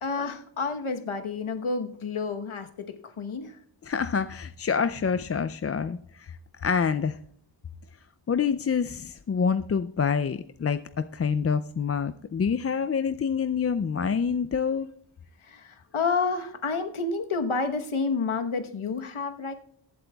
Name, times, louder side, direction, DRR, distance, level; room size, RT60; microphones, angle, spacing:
voice 1, 0.0-3.6 15.4-19.5, left 4 dB, 80° left, 6 dB, 1.2 m, -30 dB
voice 2, 3.9-7.2 8.3-14.9, left 6 dB, 35° left, 11 dB, 0.4 m, -27 dB
22.0 x 7.9 x 2.3 m, 0.63 s
wide cardioid pair, 60°, 49 cm